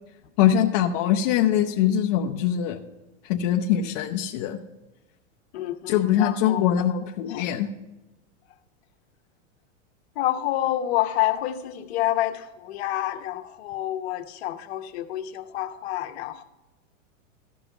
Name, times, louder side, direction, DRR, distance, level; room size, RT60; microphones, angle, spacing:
voice 1, 0.4-2.8 3.3-4.6 5.9-7.7, left 10 dB, 25° left, 0.4 m, -22 dB
voice 2, 5.5-6.7 7.3-7.5 10.1-16.4, left 13 dB, 55° left, 1.0 m, -28 dB
14.0 x 5.4 x 5.8 m
supercardioid pair, 155°, 39 cm